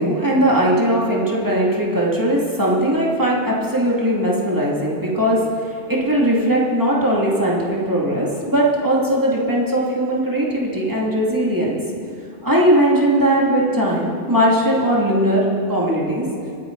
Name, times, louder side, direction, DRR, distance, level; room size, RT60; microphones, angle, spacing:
voice 1, 0.0-11.8 12.4-16.3, right 1 dB, 15° right, -5 dB, 2.6 m, -19 dB
25.0 x 10.0 x 4.0 m, 2.4 s
omnidirectional pair, 1.2 m